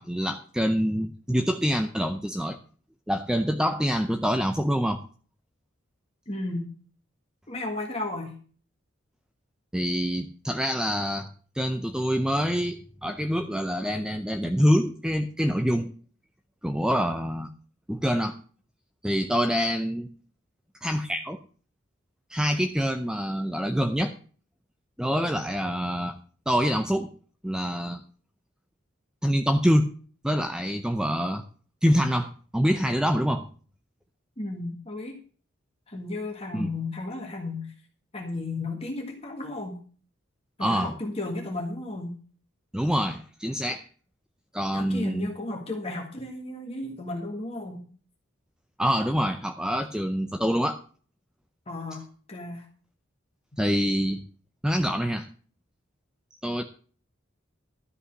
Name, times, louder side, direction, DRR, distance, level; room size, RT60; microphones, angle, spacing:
voice 1, 0.0-2.6 3.1-5.0 9.7-11.3 11.5-15.9 16.6-17.5 17.9-18.4 19.0-20.1 20.8-21.4 22.3-24.1 25.0-26.2 26.5-27.1 27.4-28.0 29.2-29.9 30.2-31.4 31.8-33.4 36.5-36.7 40.6-40.9 42.7-43.9 44.5-45.3 48.8-50.8 53.6-54.2 54.6-55.3 56.4-56.6, equal, 5° right, 7 dB, 0.5 m, -25 dB
voice 2, 6.3-6.7 7.5-8.4 34.4-35.2 35.9-37.7 38.1-39.8 40.6-42.1 44.7-47.8 51.7-52.7, left 2 dB, 30° left, 1 dB, 1.8 m, -34 dB
12.5 x 5.6 x 7.4 m, 0.42 s
head